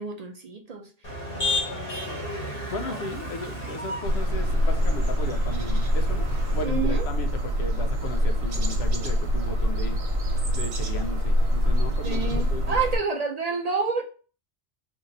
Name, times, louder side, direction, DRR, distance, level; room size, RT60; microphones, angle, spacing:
voice 1, 0.0-1.8 2.9-3.0 6.6-7.1 12.0-14.0, right 4 dB, 50° right, 3 dB, 0.5 m, -29 dB
Motor vehicle (road), 1.0-6.6, left 1 dB, 60° left, 1.3 m, -33 dB
voice 2, 2.7-6.3 6.5-10.0 10.5-12.8, left 2 dB, 85° left, 7 dB, 0.9 m, -35 dB
sound 1, 4.0-13.0, equal, 75° right, 1.1 m, -25 dB
2.8 x 2.6 x 3.8 m, 0.38 s
omnidirectional pair, 1.1 m